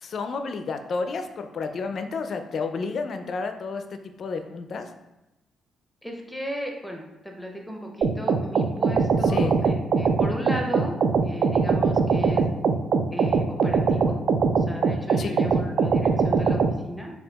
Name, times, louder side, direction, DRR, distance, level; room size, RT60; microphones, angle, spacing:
voice 1, 0.0-4.9 9.2-9.6 15.2-15.4, left 4 dB, 55° left, 7 dB, 0.3 m, -31 dB
voice 2, 6.0-10.9 11.2-12.5 13.1-14.2 14.7-17.1, equal, ahead, 1 dB, 0.7 m, -36 dB
sound 1, 8.0-16.7, right 5 dB, 60° right, 0.3 m, -22 dB
5.5 x 2.3 x 2.3 m, 0.98 s
cardioid pair, 90°, 0 cm